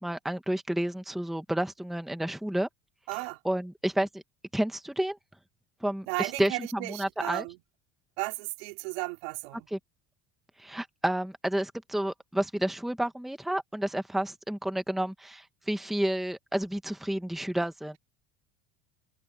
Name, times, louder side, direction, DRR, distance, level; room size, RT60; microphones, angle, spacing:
voice 1, 0.0-2.7 3.4-4.2 4.5-5.2 5.8-7.4 9.7-9.8 10.6-18.0, right 1 dB, ahead, 1.2 m, -30 dB
voice 2, 3.1-3.4 6.1-7.6 8.2-9.7, right 27 dB, 75° right, 3.4 m, -34 dB
cardioid pair, 155°, 30 cm